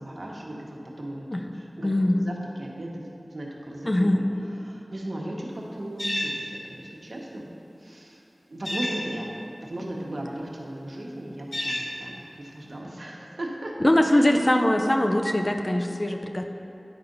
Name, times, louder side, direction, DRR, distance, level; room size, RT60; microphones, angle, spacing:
voice 1, 0.0-3.0 3.3-7.5 7.8-8.2 8.5-9.3 9.6-13.7 14.1-14.4, right 1 dB, 70° right, -2 dB, 1.2 m, -37 dB
voice 2, 1.8-2.2 3.9-4.2 13.8-16.5, left 1 dB, 30° left, 4 dB, 0.6 m, -22 dB
sound 1, 6.0-6.3 8.6-9.0 11.5-11.9, left 1 dB, 60° left, 1.5 m, -29 dB
10.5 x 4.2 x 5.3 m, 2.8 s
wide cardioid pair, 60°, 0 cm